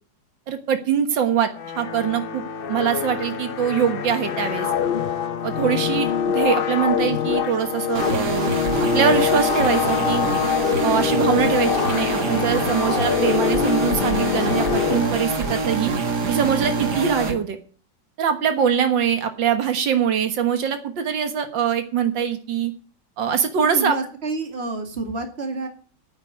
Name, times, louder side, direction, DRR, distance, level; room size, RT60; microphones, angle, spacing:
voice 1, 0.5-1.5 1.8-2.4 2.7-4.7 5.4-8.5 8.9-10.2 10.8-15.9 16.3-17.6 18.2-22.7 23.2-24.0, right 8 dB, 85° right, 8 dB, 2.1 m, -23 dB
sound 1, 1.5-15.7, left 8 dB, 80° left, 0.5 m, -24 dB
sound 2, 7.9-17.3, right 3 dB, 60° right, 2.3 m, -25 dB
voice 2, 23.7-25.7, right 2 dB, 35° right, 5 dB, 2.4 m, -28 dB
9.7 x 8.5 x 9.4 m, 0.41 s
omnidirectional pair, 2.0 m